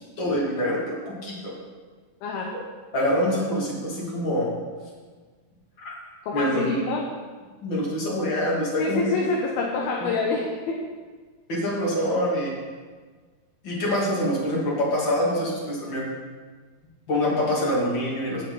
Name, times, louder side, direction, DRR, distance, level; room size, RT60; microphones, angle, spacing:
voice 1, 0.2-1.5 2.9-4.5 5.8-6.0 6.3-6.8 7.6-9.2 11.5-12.5 13.6-16.1 17.1-18.5, equal, 35° left, -4 dB, 2.3 m, -25 dB
voice 2, 2.2-2.5 6.2-7.1 8.8-10.9, left 3 dB, 75° left, -1 dB, 2.7 m, -27 dB
16.0 x 6.9 x 3.9 m, 1.5 s
omnidirectional pair, 4.8 m